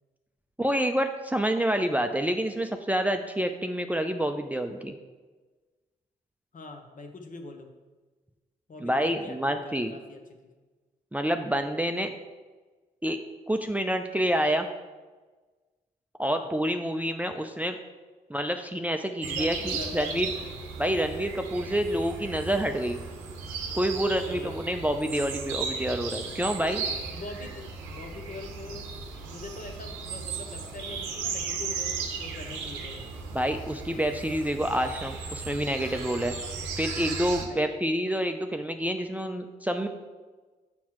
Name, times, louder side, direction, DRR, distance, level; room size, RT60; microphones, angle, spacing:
voice 1, 0.6-4.9 8.8-9.9 11.1-12.1 13.0-13.2 13.5-14.7 16.2-17.7 18.3-20.3 20.8-23.0 23.8-26.8 33.3-36.3 36.8-39.9, equal, 10° right, 6 dB, 0.5 m, -28 dB
voice 2, 6.5-7.7 8.7-10.5 16.3-16.5 19.2-20.5 24.2-24.8 26.9-28.9 29.2-33.1 37.5-37.8, left 3 dB, 45° left, 4 dB, 1.1 m, -43 dB
sound 1, 19.2-37.4, right 5 dB, 90° right, 0.7 m, -36 dB
7.1 x 6.0 x 3.1 m, 1.3 s
hypercardioid pair, 40°, 19 cm